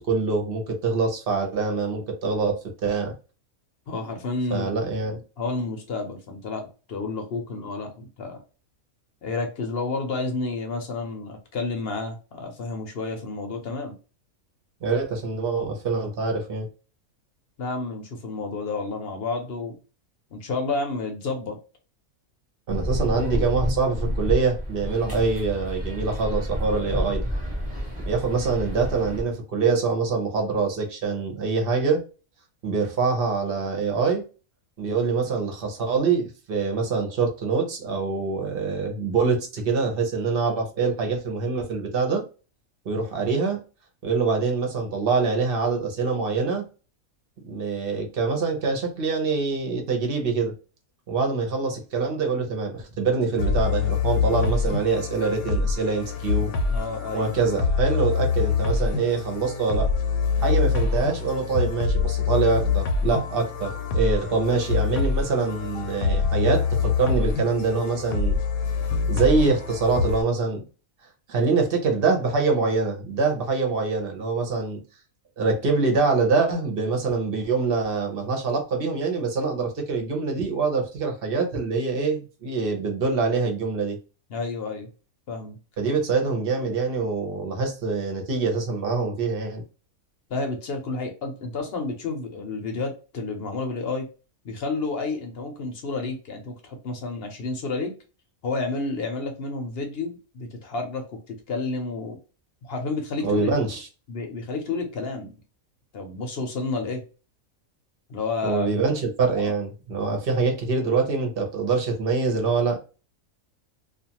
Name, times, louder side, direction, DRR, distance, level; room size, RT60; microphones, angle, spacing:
voice 1, 0.1-3.1 4.5-5.2 14.8-16.7 22.7-27.3 28.1-32.0 32.6-34.2 34.8-42.2 42.8-43.6 44.0-46.6 47.4-50.5 51.1-56.5 57.1-59.9 60.4-68.4 69.1-70.6 71.3-74.8 75.4-84.0 85.8-89.6 103.2-103.9 108.4-112.8, right 4 dB, 50° right, 0.8 m, -25 dB
voice 2, 3.9-4.7 5.4-8.4 9.2-13.9 17.6-19.8 20.3-21.6 56.7-57.3 84.3-84.9 85.3-85.6 90.3-94.1 94.4-97.9 98.4-102.2 102.6-103.5 104.1-105.3 105.9-107.0 108.1-108.7 109.4-109.5, left 3 dB, 55° left, 0.8 m, -30 dB
sound 1, 22.7-29.2, equal, 5° right, 1.0 m, -29 dB
sound 2, 53.4-70.2, left 5 dB, 85° left, 1.1 m, -25 dB
2.4 x 2.4 x 2.8 m
omnidirectional pair, 1.5 m